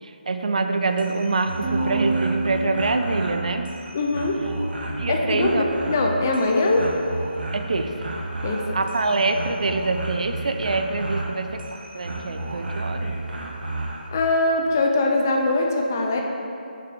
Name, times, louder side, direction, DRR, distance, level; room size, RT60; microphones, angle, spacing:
voice 1, 0.0-3.7 4.8-5.7 7.5-8.1 8.7-13.1, right 3 dB, 45° right, 7 dB, 0.4 m, -25 dB
sound 1, 0.8-14.1, right 2 dB, 70° right, 1.1 m, -32 dB
sound 2, 1.6-4.1, right 2 dB, 10° right, 0.9 m, -29 dB
voice 2, 3.9-4.4 5.1-6.9 8.4-8.6 14.1-16.2, left 2 dB, 20° left, 1 dB, 0.4 m, -22 dB
6.8 x 5.5 x 4.4 m, 2.6 s
hypercardioid pair, 175°, 5 cm